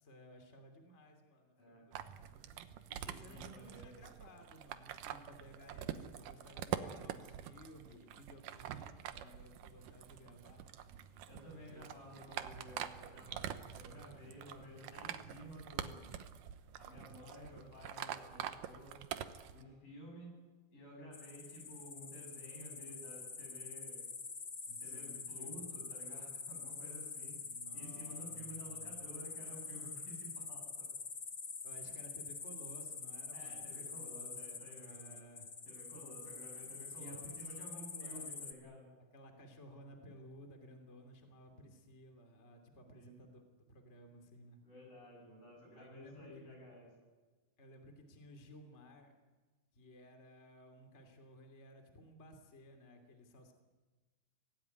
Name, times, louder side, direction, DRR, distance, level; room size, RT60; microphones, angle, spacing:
voice 1, 0.0-10.6 11.6-12.2 24.7-25.7 27.4-30.7 31.6-35.5 36.9-38.3 39.1-44.6 45.8-46.4 47.6-49.1 49.7-53.5, equal, 20° left, 4 dB, 2.8 m, -57 dB
sound 1, 1.9-19.6, right 10 dB, 80° right, 2.6 m, -46 dB
voice 2, 3.0-3.9 5.9-6.0 6.9-7.1 11.3-16.2 16.8-19.0 19.5-20.3 20.7-24.1 24.8-27.4 27.7-30.9 33.3-35.2 35.7-38.9 42.9-43.1 44.6-46.9, equal, 80° left, 0 dB, 9.8 m, -53 dB
sound 2, 21.1-38.5, left 5 dB, 40° left, 1.3 m, -46 dB
25.0 x 18.0 x 9.7 m, 1.3 s
omnidirectional pair, 3.8 m